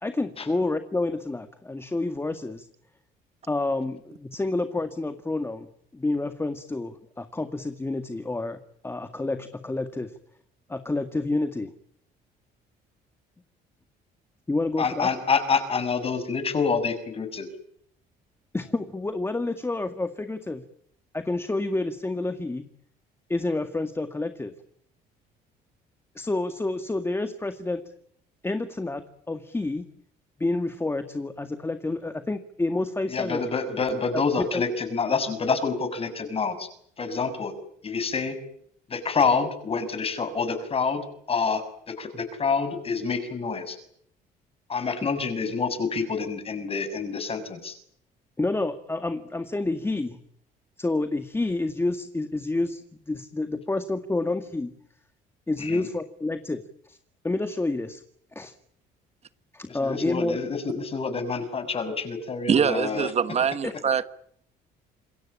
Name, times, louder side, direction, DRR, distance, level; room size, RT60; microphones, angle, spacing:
voice 1, 0.0-2.7 3.5-5.7 5.9-8.6 8.8-10.1 10.7-11.7 14.5-15.1 18.5-20.6 21.1-22.6 23.3-24.5 26.2-27.8 28.4-29.9 30.4-33.4 34.4-34.5 48.4-50.2 50.8-52.8 53.1-54.7 55.5-57.0 57.2-58.0 58.3-58.5 59.5-60.4 63.6-63.7, left 2 dB, 15° left, 1.9 m, -29 dB
voice 2, 14.8-17.5 33.1-36.7 37.0-37.5 37.8-38.4 38.9-41.0 41.3-43.8 44.7-47.8 55.6-55.9 59.7-63.1, left 5 dB, 35° left, 6.6 m, -27 dB
voice 3, 62.5-64.0, right 7 dB, 40° right, 1.3 m, -23 dB
27.5 x 22.5 x 8.7 m
cardioid pair, 110°, 17 cm